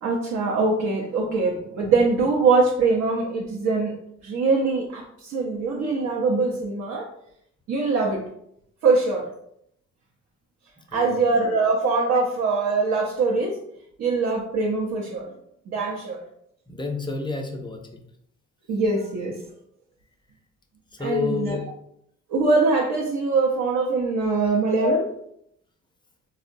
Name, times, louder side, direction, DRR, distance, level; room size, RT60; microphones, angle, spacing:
voice 1, 0.0-3.9 4.2-7.1 7.7-8.3 8.8-9.3 10.9-13.6 14.0-15.3 15.7-16.2 18.7-19.4 21.0-21.6 22.3-25.0, right 3 dB, 65° right, -1 dB, 0.6 m, -23 dB
voice 2, 10.9-11.2 16.7-18.0 20.9-21.6 24.8-25.0, left 4 dB, 15° left, 3 dB, 0.5 m, -28 dB
3.6 x 2.1 x 2.5 m, 0.73 s
cardioid pair, 90°, 30 cm